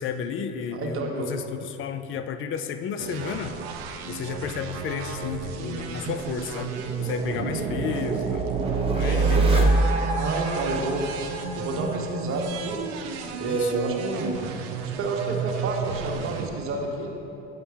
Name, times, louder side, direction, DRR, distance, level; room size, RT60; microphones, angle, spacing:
voice 1, 0.0-3.5 4.1-6.7 7.0-8.5 8.9-9.8 13.4-13.7, left 7 dB, 40° left, 10 dB, 0.5 m, -32 dB
voice 2, 0.7-1.3 10.2-11.1 11.5-12.8 13.4-14.5 14.8-17.1, right 3 dB, 45° right, 0 dB, 1.2 m, -29 dB
sound 1, 3.0-16.5, right 5 dB, 75° right, 0.7 m, -33 dB
sound 2, 5.6-12.5, right 3 dB, 20° right, 1.0 m, -26 dB
8.6 x 5.5 x 3.4 m, 2.8 s
supercardioid pair, 95°, 31 cm